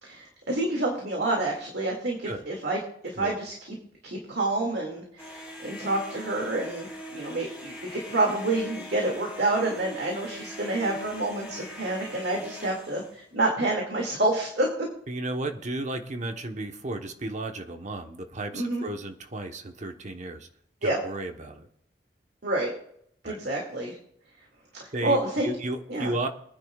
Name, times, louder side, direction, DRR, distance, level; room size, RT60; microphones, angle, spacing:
voice 1, 0.0-2.8 3.0-3.8 4.0-14.9 18.5-18.8 20.8-21.0 22.4-22.7 23.2-24.0 24.8-25.5 25.9-26.1, right 2 dB, 70° right, -1 dB, 2.3 m, -28 dB
sound 1, 5.2-13.2, left 1 dB, 5° right, 4.6 m, -42 dB
voice 2, 15.1-20.5 20.8-21.7 23.2-23.4 24.9-26.3, right 2 dB, 45° right, 6 dB, 1.1 m, -34 dB
24.0 x 10.0 x 2.4 m, 0.68 s
head